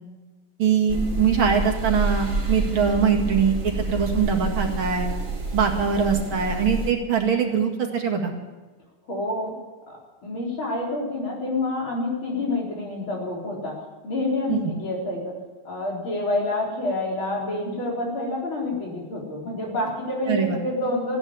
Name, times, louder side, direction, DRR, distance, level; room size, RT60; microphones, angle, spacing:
voice 1, 0.6-5.1 5.5-8.3 14.5-14.6 20.3-20.6, right 6 dB, 65° right, 2 dB, 2.7 m, -22 dB
sound 1, 0.9-6.9, right 3 dB, 35° right, 3.2 m, -28 dB
voice 2, 9.1-9.5 9.9-15.4 15.6-21.2, left 2 dB, 65° left, -2 dB, 4.8 m, -28 dB
15.5 x 10.5 x 8.6 m, 1.3 s
omnidirectional pair, 2.4 m